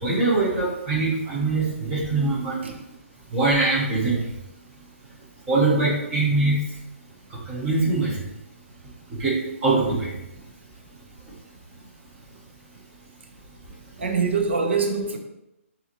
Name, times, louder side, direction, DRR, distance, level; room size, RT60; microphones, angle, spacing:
voice 1, 0.0-2.6 3.3-4.2 5.5-6.6 7.5-8.1 9.2-9.3 9.6-10.1, right 3 dB, 5° right, 0.7 m, -22 dB
voice 2, 14.0-15.2, right 4 dB, 55° right, 0.8 m, -24 dB
6.7 x 2.6 x 2.9 m
hypercardioid pair, 180°, 7 cm